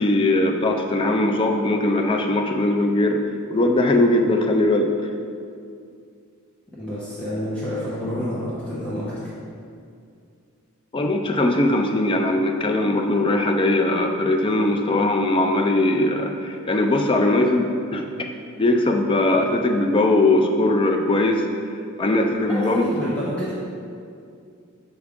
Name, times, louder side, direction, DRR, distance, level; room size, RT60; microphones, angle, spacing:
voice 1, 0.0-3.2 3.5-4.9 10.9-18.0 18.6-21.4 22.0-22.9, left 2 dB, 25° left, 3 dB, 0.4 m, -20 dB
voice 2, 6.8-9.3 22.4-23.5, equal, 5° left, -10 dB, 0.9 m, -28 dB
6.4 x 4.9 x 3.6 m, 2.4 s
head